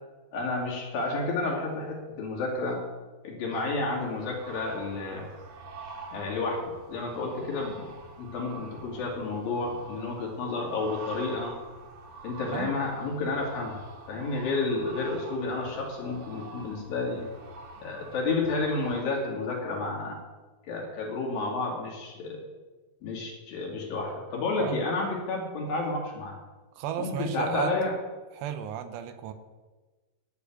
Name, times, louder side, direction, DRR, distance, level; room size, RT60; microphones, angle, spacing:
voice 1, 0.3-2.8 3.2-5.3 6.1-7.9 8.2-11.5 12.2-13.8 14.1-17.3 17.8-20.2 20.7-22.4 23.0-26.4 27.0-27.9, left 3 dB, 60° left, -1 dB, 3.8 m, -31 dB
sound 1, 3.6-19.0, right 3 dB, 60° right, 1.8 m, -46 dB
voice 2, 26.8-27.7 28.3-29.3, right 10 dB, 85° right, 9 dB, 2.9 m, -34 dB
11.5 x 6.9 x 9.4 m, 1.3 s
omnidirectional pair, 5.0 m